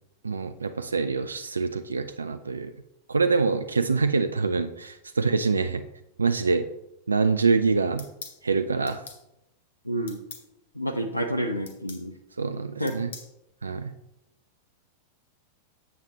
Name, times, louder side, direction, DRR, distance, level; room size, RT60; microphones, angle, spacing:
voice 1, 0.2-2.7 3.1-5.8 6.2-6.7 7.1-8.1 8.4-9.0 12.4-13.1 13.6-13.9, right 4 dB, 75° right, 10 dB, 0.3 m, -25 dB
sound 1, 8.0-8.4 8.9-9.2 10.1-10.5 11.7-12.1 12.9-13.3, left 5 dB, 65° left, 0.9 m, -42 dB
voice 2, 9.9-10.2 10.8-12.1 12.8-12.9, equal, 85° left, 7 dB, 0.6 m, -29 dB
7.4 x 7.3 x 2.9 m, 0.87 s
figure-of-eight pair, 90°, 0 cm